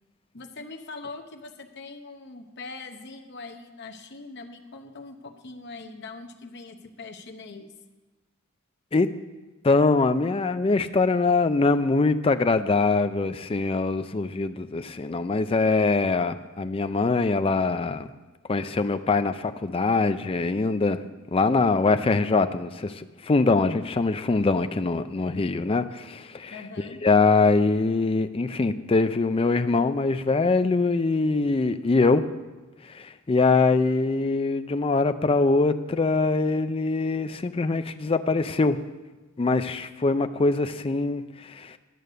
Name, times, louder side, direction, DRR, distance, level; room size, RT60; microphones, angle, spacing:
voice 1, 0.3-7.7 26.5-27.0, left 3 dB, 50° left, 6 dB, 0.9 m, -42 dB
voice 2, 9.6-18.1 18.5-21.0 21.3-32.2 32.9-38.8 39.4-41.8, left 3 dB, 25° left, 10 dB, 0.4 m, -23 dB
11.0 x 6.6 x 6.6 m, 1.2 s
head